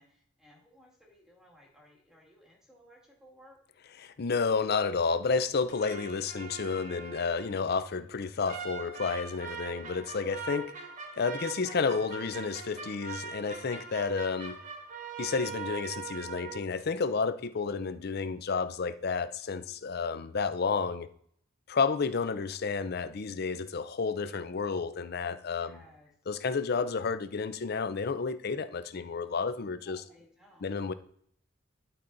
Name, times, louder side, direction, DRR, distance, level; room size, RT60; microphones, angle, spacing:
voice 1, 0.0-3.6 25.4-26.1 29.9-30.9, equal, 5° right, 2.0 m, -59 dB
voice 2, 4.0-10.7 11.2-14.6 15.2-21.1 21.7-25.8 26.3-30.0 30.6-30.9, left 5 dB, 55° left, 0.5 m, -31 dB
sound 1, 5.7-7.7 8.5-16.6, right 5 dB, 40° right, 1.1 m, -42 dB
12.0 x 4.2 x 3.9 m
head